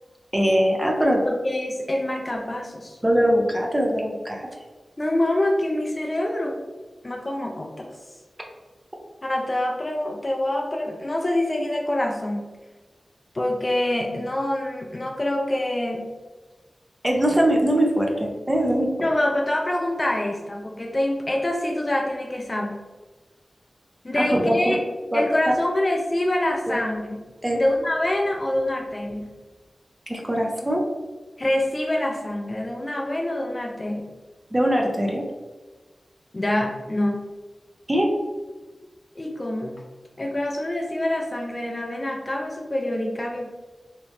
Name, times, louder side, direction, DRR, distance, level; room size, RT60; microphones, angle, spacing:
voice 1, 0.3-1.2 3.0-4.5 17.0-18.9 24.2-24.8 25.1-25.6 26.7-26.8 27.4-27.6 30.1-30.8 34.5-35.2 37.9-38.1, equal, 15° right, 0 dB, 0.6 m, -22 dB
voice 2, 1.2-3.0 5.0-6.6 7.0-7.9 9.2-12.5 13.3-16.1 19.0-22.8 24.0-24.8 25.1-27.1 27.5-29.3 31.4-34.1 36.3-37.3 39.2-39.8 40.2-43.5, left 1 dB, 30° left, 1 dB, 0.4 m, -25 dB
3.0 x 2.8 x 3.1 m, 1.3 s
wide cardioid pair, 105°, 0 cm